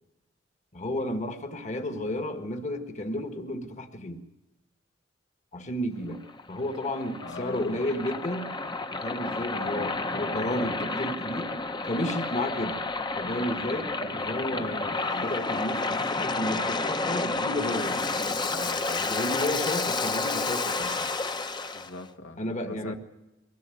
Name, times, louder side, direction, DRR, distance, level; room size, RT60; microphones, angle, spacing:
voice 1, 0.7-4.2 5.5-6.2 6.5-8.5 8.9-11.5 11.8-12.8 13.2-18.0 19.0-21.1 22.4-23.0, left 1 dB, 40° left, 6 dB, 1.7 m, -32 dB
Waves surf, 6.1-21.9, left 3 dB, 25° left, 0.9 m, -30 dB
voice 2, 7.2-8.0 9.3-10.8 18.1-19.2 21.7-22.4 22.7-23.0, left 2 dB, 75° left, 4 dB, 2.0 m, -42 dB
23.0 x 17.0 x 9.2 m, 0.98 s
head